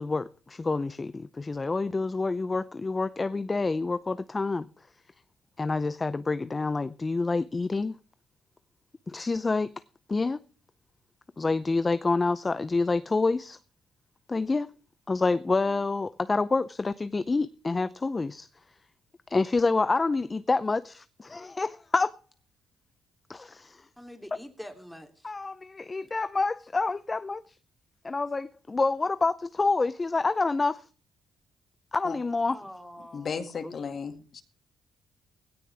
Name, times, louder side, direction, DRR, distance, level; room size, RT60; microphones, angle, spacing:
voice 1, 0.0-4.7 5.6-8.0 9.1-9.7 10.1-10.4 11.4-13.6 14.3-14.7 15.1-18.5 19.3-22.1 23.3-23.9 25.2-27.6 28.0-30.8 31.9-32.6, left 3 dB, 25° left, 0.6 m, -27 dB
voice 2, 24.0-25.3 32.5-33.5, equal, ahead, 3.0 m, -45 dB
voice 3, 33.1-34.4, left 6 dB, 50° left, 2.1 m, -35 dB
17.0 x 16.5 x 3.5 m
cardioid pair, 90°, 0 cm